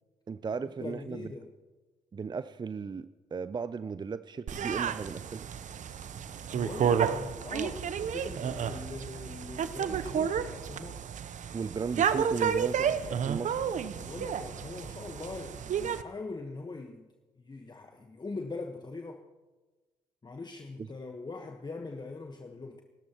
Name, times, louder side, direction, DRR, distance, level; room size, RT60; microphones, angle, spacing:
voice 1, 0.3-1.3 2.1-5.4 11.5-13.6 20.8-20.9, right 5 dB, 30° right, 14 dB, 0.5 m, -36 dB
voice 2, 0.8-1.5 6.5-11.1 13.9-17.1 17.4-19.2 20.2-22.8, left 3 dB, 30° left, 4 dB, 1.4 m, -42 dB
sound 1, 4.5-16.0, right 7 dB, 50° right, 0.9 m, -31 dB
29.5 x 13.0 x 3.1 m, 1.2 s
hypercardioid pair, 50°, 16 cm